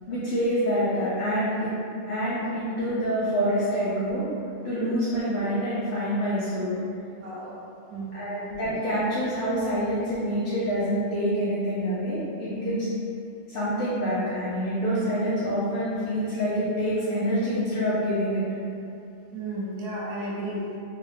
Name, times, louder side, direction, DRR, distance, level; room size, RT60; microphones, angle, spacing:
voice 1, 0.1-1.7 2.1-4.3 4.6-6.8 8.1-12.9 13.5-18.4, equal, 60° left, -11 dB, 0.6 m, -26 dB
voice 2, 7.1-7.6 7.9-8.5 19.3-20.6, right 1 dB, 70° right, -5 dB, 0.9 m, -34 dB
3.5 x 2.0 x 2.5 m, 2.6 s
omnidirectional pair, 1.5 m